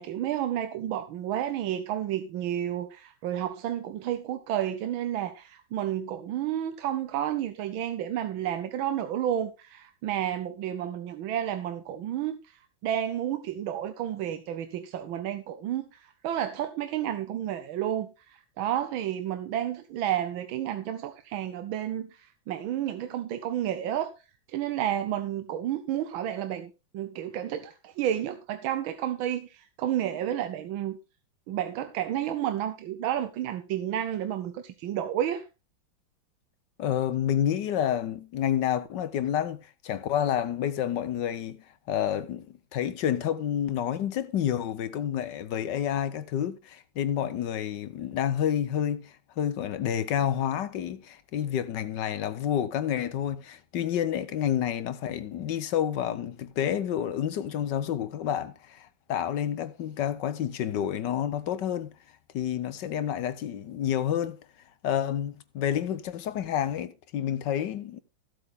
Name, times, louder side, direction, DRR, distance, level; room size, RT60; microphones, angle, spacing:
voice 1, 0.0-24.1 24.5-31.0 31.5-35.4, right 11 dB, 90° right, 1.6 m, -31 dB
voice 2, 36.8-61.9 62.3-64.4 64.8-68.0, left 10 dB, 65° left, 1.4 m, -29 dB
15.0 x 8.1 x 3.6 m
omnidirectional pair, 2.2 m